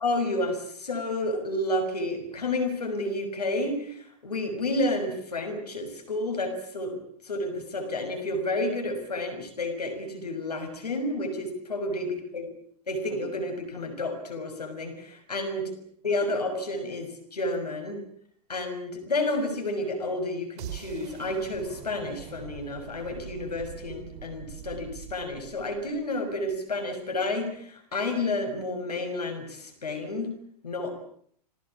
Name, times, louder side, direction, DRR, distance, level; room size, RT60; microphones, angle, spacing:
voice 1, 0.0-7.0 7.2-12.5 12.9-15.6 16.0-18.0 18.5-30.3 30.6-30.9, left 2 dB, 75° left, 5 dB, 6.3 m, -30 dB
sound 1, 20.6-26.6, right 10 dB, 45° right, 5.2 m, -43 dB
28.0 x 20.0 x 8.7 m, 0.64 s
figure-of-eight pair, 100°, 21 cm